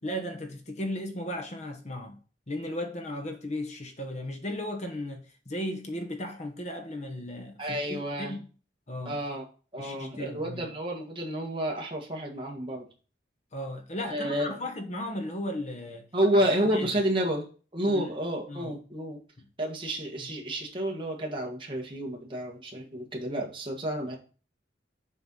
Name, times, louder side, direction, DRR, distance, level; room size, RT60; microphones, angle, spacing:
voice 1, 0.0-2.2 2.5-8.5 8.9-9.2 9.8-10.7 13.5-16.1 16.7-16.9 17.9-18.1 18.5-18.8 19.4-19.5 20.2-20.3, left 1 dB, 35° left, 1.1 m, -36 dB
voice 2, 7.6-8.4 9.1-9.4 9.7-12.9 14.1-14.6 16.1-17.5 17.7-19.2 19.6-24.2, right 1 dB, 25° right, 1.7 m, -30 dB
7.4 x 4.5 x 5.5 m
head